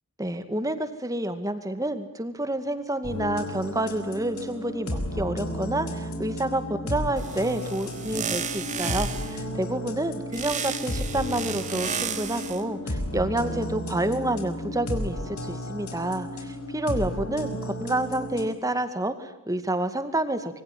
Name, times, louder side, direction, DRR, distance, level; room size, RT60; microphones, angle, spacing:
voice 1, 0.2-20.6, right 1 dB, 15° right, 10 dB, 2.2 m, -29 dB
sound 1, 3.0-18.5, equal, 80° left, 5.0 m, -33 dB
sound 2, 7.2-9.4 10.3-12.6, right 7 dB, 35° right, 2.5 m, -33 dB
26.5 x 24.0 x 9.4 m, 0.79 s
head